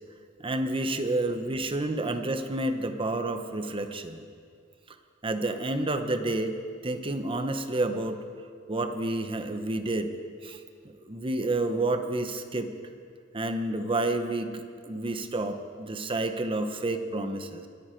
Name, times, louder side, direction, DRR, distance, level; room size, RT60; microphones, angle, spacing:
voice 1, 0.4-4.2 4.9-5.0 5.2-6.6 6.8-8.2 8.7-10.1 10.4-12.7 13.3-17.7, right 2 dB, 25° right, 8 dB, 0.8 m, -30 dB
23.0 x 9.7 x 4.5 m, 2.2 s
head